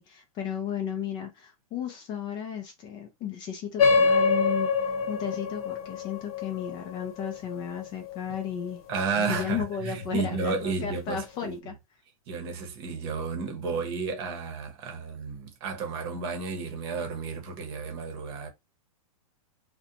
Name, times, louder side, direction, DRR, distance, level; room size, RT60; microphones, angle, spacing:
voice 1, 0.0-8.8 9.2-11.7, left 8 dB, 25° left, 0.4 m, -34 dB
sound 1, 3.8-8.7, left 4 dB, 75° left, 0.8 m, -26 dB
voice 2, 8.9-11.5 12.3-18.5, right 4 dB, 45° right, 0.9 m, -32 dB
2.5 x 2.1 x 2.6 m
supercardioid pair, 155°, 19 cm